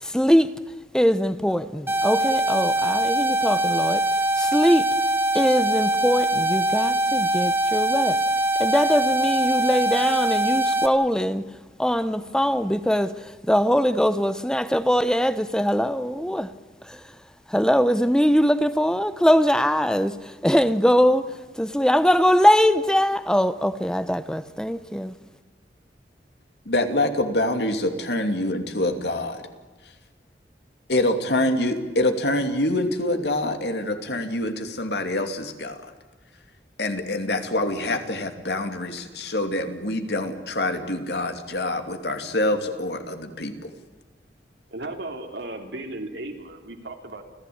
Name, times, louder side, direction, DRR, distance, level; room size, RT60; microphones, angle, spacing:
voice 1, 0.0-0.6 0.9-5.0 5.3-8.2 8.6-11.5 11.8-16.5 16.8-17.2 17.5-25.1, equal, 5° left, 0.8 m, -22 dB
sound 1, 1.9-10.9, right 1 dB, 15° right, 1.2 m, -22 dB
voice 2, 26.7-29.4 30.9-35.8 36.8-43.7, left 1 dB, 70° left, 2.8 m, -25 dB
voice 3, 44.7-47.2, right 2 dB, 85° right, 3.4 m, -35 dB
29.5 x 15.0 x 8.7 m
head